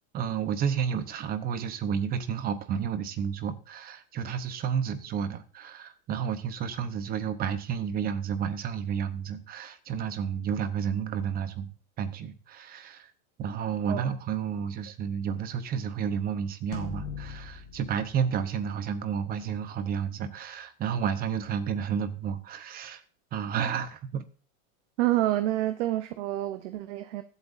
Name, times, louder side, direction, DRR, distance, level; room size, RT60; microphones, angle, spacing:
voice 1, 0.1-11.7 12.0-13.1 13.4-23.0 23.3-24.2, right 7 dB, 20° right, 0.8 m, -31 dB
sound 1, 16.7-19.3, left 6 dB, 30° left, 1.7 m, -41 dB
voice 2, 25.0-27.2, right 14 dB, 55° right, 0.9 m, -28 dB
21.5 x 8.1 x 2.6 m
supercardioid pair, 160°, 42 cm